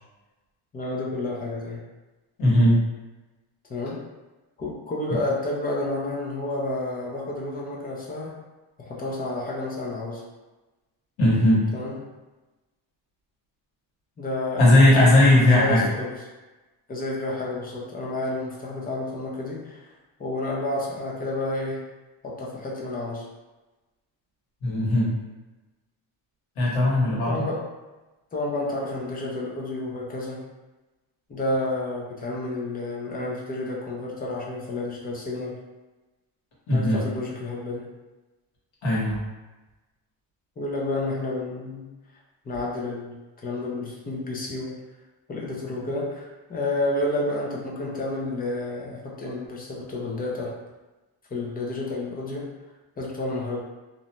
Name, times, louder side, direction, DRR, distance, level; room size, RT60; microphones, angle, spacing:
voice 1, 0.7-1.8 3.7-4.0 4.6-8.3 8.8-10.2 11.7-12.0 14.2-16.1 16.9-19.9 20.2-21.8 22.2-23.2 27.3-27.6 28.3-30.4 31.3-35.5 36.7-37.9 40.6-41.9 42.4-44.8 45.3-50.5 51.3-52.4 53.0-53.6, left 2 dB, 20° left, -3 dB, 0.4 m, -30 dB
voice 2, 2.4-2.8 11.2-11.6 14.6-15.8 24.6-25.1 26.6-27.5 36.7-37.0 38.8-39.2, left 1 dB, 70° left, -6 dB, 1.3 m, -18 dB
2.6 x 2.1 x 2.9 m, 1.1 s
cardioid pair, 150°, 46 cm